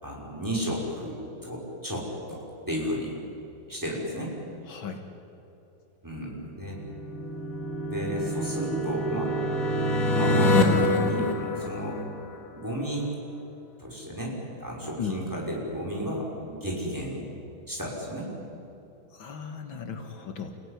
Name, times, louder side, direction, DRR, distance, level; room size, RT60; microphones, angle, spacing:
voice 1, 0.0-3.2 3.7-4.3 6.0-6.8 7.9-9.4 10.1-12.0 12.5-13.1 13.8-17.2 17.7-18.3, equal, 10° right, -3 dB, 5.6 m, -33 dB
voice 2, 4.6-5.0 15.0-15.2 19.1-20.5, left 6 dB, 70° left, 5 dB, 2.3 m, -36 dB
sound 1, 6.5-12.3, left 1 dB, 45° left, 2.3 m, -26 dB
29.5 x 16.5 x 10.0 m, 2.9 s
omnidirectional pair, 2.2 m